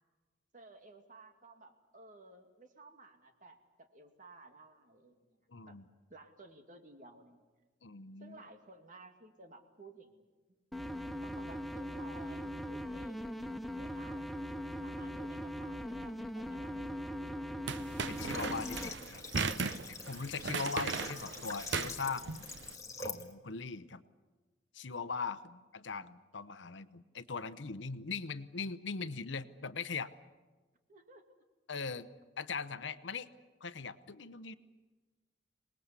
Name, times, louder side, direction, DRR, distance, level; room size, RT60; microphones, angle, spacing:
voice 1, 0.5-5.4 5.6-5.8 6.1-7.4 8.2-10.3 11.2-13.5 13.8-14.3 14.8-16.9 17.2-17.7 20.9-21.6 30.9-31.3, right 2 dB, 45° right, 5 dB, 2.2 m, -56 dB
voice 2, 5.5-5.8 7.8-8.4 18.1-19.2 20.1-22.6 23.0-24.0 24.7-30.1 31.7-32.1 32.4-33.3 33.6-34.5, left 4 dB, 70° left, 14 dB, 0.9 m, -40 dB
sound 1, 10.7-18.9, equal, ahead, 0.7 m, -40 dB
sound 2, 17.7-22.7, right 5 dB, 70° right, 0.8 m, -37 dB
Water / Water tap faucet, 18.2-23.3, left 3 dB, 20° left, 1.8 m, -45 dB
26.0 x 20.0 x 8.3 m, 1.3 s
head